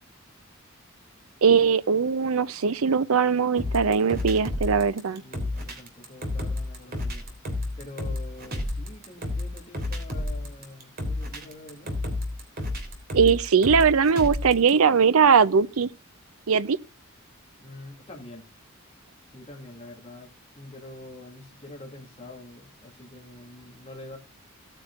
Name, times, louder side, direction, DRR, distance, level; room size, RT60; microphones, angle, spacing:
voice 1, 1.4-5.2 13.1-15.9 16.5-16.8, right 6 dB, 85° right, 0.6 m, -20 dB
sound 1, 3.6-14.7, left 1 dB, 50° right, 3.4 m, -31 dB
voice 2, 5.2-7.3 7.8-12.0 17.6-18.5 19.3-24.2, left 2 dB, 30° left, 2.5 m, -45 dB
17.5 x 9.2 x 2.5 m
head